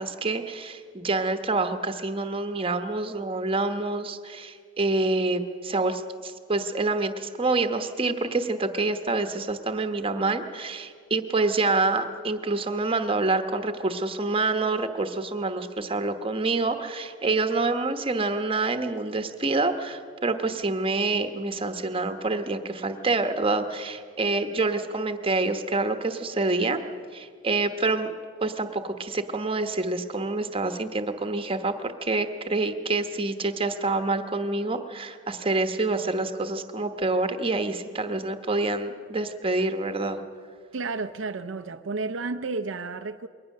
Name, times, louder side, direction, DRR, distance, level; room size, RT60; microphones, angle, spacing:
voice 1, 0.0-26.8 27.1-28.1 28.4-40.2, right 3 dB, 30° right, 8 dB, 1.1 m, -27 dB
voice 2, 40.7-43.3, right 3 dB, 75° right, 8 dB, 0.6 m, -32 dB
22.0 x 18.5 x 6.6 m, 2.1 s
head